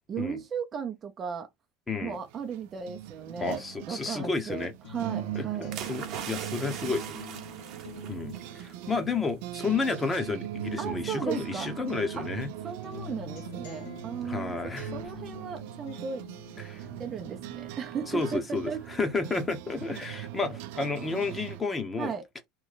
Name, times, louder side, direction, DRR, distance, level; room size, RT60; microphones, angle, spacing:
voice 1, 0.1-1.5 2.0-5.8 10.8-11.7 12.2-12.3 12.6-16.2 17.0-18.8 22.0-22.5, right 7 dB, 30° right, 0.6 m, -36 dB
voice 2, 1.9-2.2 3.4-4.7 5.3-7.3 8.1-12.5 14.2-14.9 16.6-16.8 18.1-22.1, left 4 dB, 20° left, 0.9 m, -31 dB
sound 1, 2.1-21.6, right 14 dB, 70° right, 0.4 m, -40 dB
sound 2, 4.8-11.5 11.9-19.5 19.9-20.8, left 8 dB, 80° left, 1.0 m, -49 dB
sound 3, 5.7-8.7 9.1-9.3, right 8 dB, 50° right, 1.0 m, -40 dB
3.1 x 2.2 x 3.9 m
supercardioid pair, 120°, 0 cm